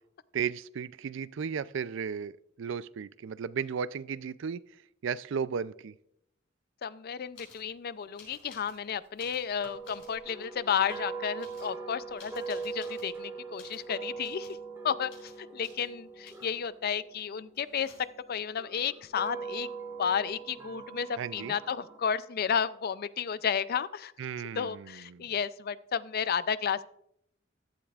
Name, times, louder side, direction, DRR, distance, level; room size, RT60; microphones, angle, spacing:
voice 1, 0.3-4.6 5.0-5.9 21.2-21.5 24.2-25.2, right 6 dB, 65° right, 18 dB, 0.4 m, -35 dB
voice 2, 6.8-14.6 14.8-19.7 20.0-24.1 24.6-26.8, left 7 dB, 50° left, 16 dB, 0.4 m, -32 dB
sound 1, 7.3-7.7 8.2-8.8 9.1-10.2 10.7-11.0 11.4-13.1 13.6-13.9 14.2-14.6 15.1-15.4 15.6-15.9 16.2-16.6 17.5-18.3 20.1-20.2 20.4-21.0, left 5 dB, 65° left, 5.4 m, -55 dB
sound 2, 9.6-17.8 18.5-22.0, right 5 dB, 15° right, 1.9 m, -41 dB
15.5 x 12.0 x 2.4 m, 0.75 s
head